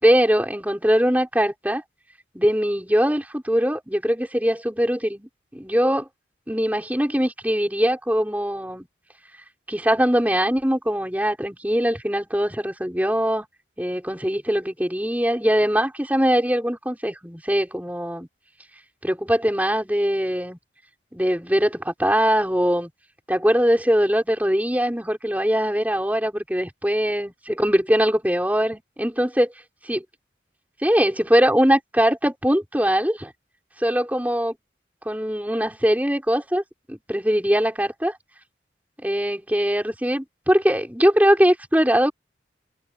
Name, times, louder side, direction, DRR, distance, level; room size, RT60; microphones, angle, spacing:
voice 1, 0.0-1.8 2.3-6.1 6.5-8.9 9.7-13.4 13.8-18.3 19.0-20.6 21.1-22.9 23.3-29.5 29.9-30.0 30.8-33.3 33.8-34.6 35.1-36.6 36.9-38.2 39.0-42.1, equal, 10° right, 5.6 m, -21 dB
head